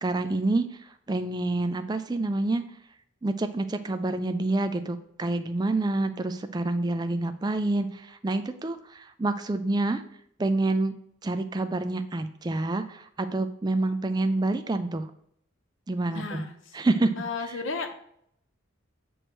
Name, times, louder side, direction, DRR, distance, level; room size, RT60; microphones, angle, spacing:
voice 1, 0.0-2.6 3.2-10.0 10.4-10.9 11.2-15.1 15.9-16.4 16.7-17.1, right 2 dB, 20° right, 10 dB, 0.3 m, -27 dB
voice 2, 16.1-16.8 17.2-17.9, left 4 dB, 65° left, 6 dB, 0.9 m, -34 dB
7.8 x 3.1 x 6.1 m, 0.71 s
head